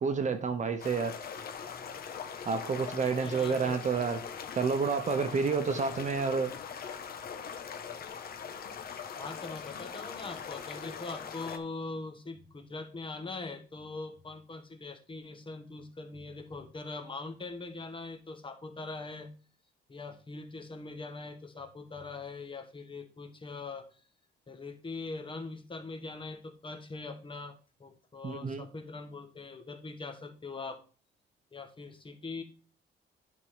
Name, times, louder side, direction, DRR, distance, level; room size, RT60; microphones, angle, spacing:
voice 1, 0.0-1.1 2.4-4.2 4.6-6.5 28.2-28.7, right 5 dB, 40° right, 0.9 m, -29 dB
sound 1, 0.8-11.6, left 7 dB, 50° left, 1.1 m, -41 dB
voice 2, 3.0-3.8 5.6-6.0 9.2-19.3 19.9-24.0 24.5-30.8 31.5-32.4, left 3 dB, 25° left, 1.3 m, -42 dB
10.5 x 3.8 x 4.9 m
cardioid pair, 120°, 20 cm